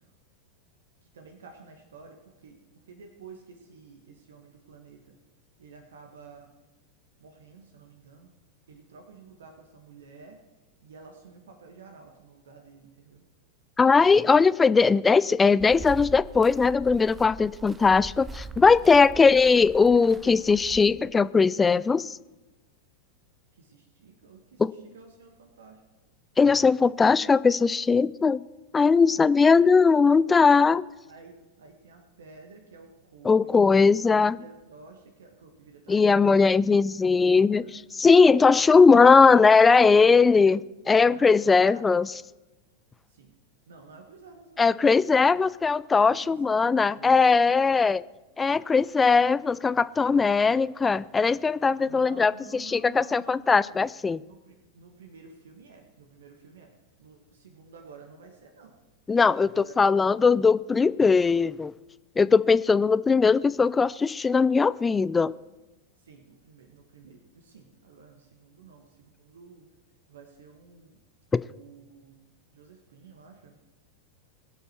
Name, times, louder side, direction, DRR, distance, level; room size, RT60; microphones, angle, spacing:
voice 1, 1.0-2.6 2.8-5.2 5.6-6.5 7.2-8.3 8.7-10.4 10.8-13.2 19.0-20.3 23.5-25.8 29.0-29.3 30.4-30.5 31.1-34.0 34.3-37.8 38.5-38.6 39.1-39.4 40.0-40.4 40.8-42.2 43.1-43.3 43.7-44.7 46.1-47.8 51.8-53.9 54.2-56.7 57.0-58.7 59.4-60.3 66.0-69.7 70.1-71.0 71.5-72.1 72.5-73.6, right 4 dB, 65° right, 3 dB, 1.6 m, -51 dB
voice 2, 13.8-22.1 24.6-24.7 26.4-28.4 28.7-30.8 33.3-34.4 35.9-40.6 40.9-42.1 44.6-48.0 48.4-54.2 59.1-61.7 62.2-65.3 71.3-71.4, left 4 dB, 15° left, 19 dB, 0.3 m, -20 dB
sound 1, 15.6-21.2, right 3 dB, 15° right, 0.7 m, -42 dB
21.5 x 8.0 x 4.5 m, 1.1 s
figure-of-eight pair, 90°, 0 cm